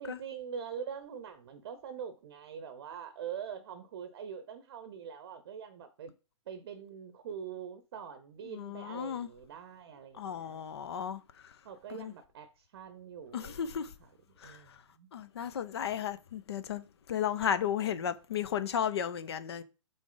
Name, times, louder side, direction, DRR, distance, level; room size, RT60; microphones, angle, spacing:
voice 1, 0.0-6.1 6.5-10.6 11.6-15.1, right 7 dB, 40° right, 0.8 m, -44 dB
voice 2, 8.5-9.3 10.2-11.2 12.0-12.1 13.3-13.9 14.4-14.6 15.1-19.6, left 9 dB, 50° left, 0.7 m, -34 dB
6.1 x 4.3 x 3.9 m
figure-of-eight pair, 120°, 17 cm